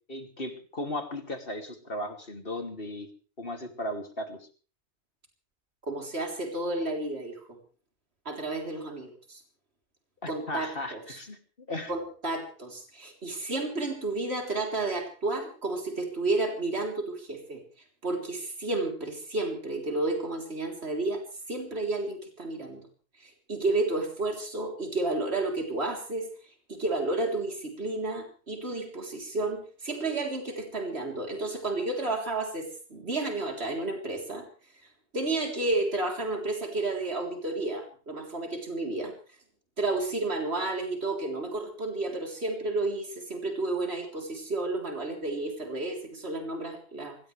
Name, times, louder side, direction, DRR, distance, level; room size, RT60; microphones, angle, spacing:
voice 1, 0.1-3.1 3.4-4.5 10.2-11.9, left 1 dB, 55° left, 5 dB, 3.0 m, -36 dB
voice 2, 5.8-7.4 8.3-9.4 10.3-11.2 11.9-17.6 18.0-21.2 21.5-22.8 23.2-34.5 35.1-39.1 39.8-47.2, right 2 dB, 65° right, 2 dB, 4.0 m, -31 dB
24.0 x 17.5 x 3.4 m, 0.39 s
omnidirectional pair, 1.1 m